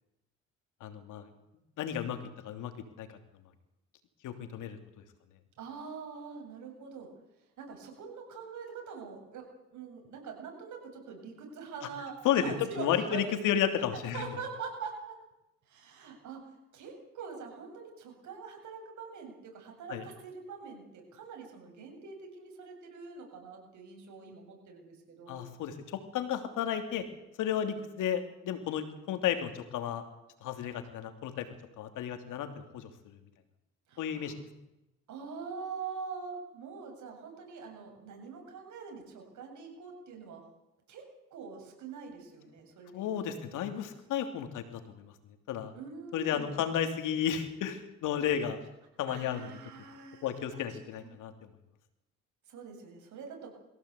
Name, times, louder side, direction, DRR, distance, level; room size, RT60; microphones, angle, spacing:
voice 1, 0.8-1.3 1.8-2.2 2.4-2.7 3.0-3.1 4.2-4.8 12.2-14.3 19.9-20.0 25.3-25.7 26.1-27.0 27.4-30.0 30.4-31.5 31.8-33.2 34.0-34.4 42.9-45.1 45.5-45.7 46.1-48.6 49.0-49.5 50.2-51.3, left 9 dB, 90° left, 7 dB, 3.0 m, -32 dB
voice 2, 5.6-7.1 7.6-13.2 13.9-15.1 15.7-16.4 16.7-25.4 27.6-27.8 33.9-34.3 35.1-40.4 40.9-41.1 41.3-43.4 45.7-46.6 49.1-51.1 52.5-53.5, right 5 dB, 75° right, 2 dB, 7.8 m, -44 dB
23.0 x 16.0 x 8.4 m, 0.92 s
cardioid pair, 90°, 30 cm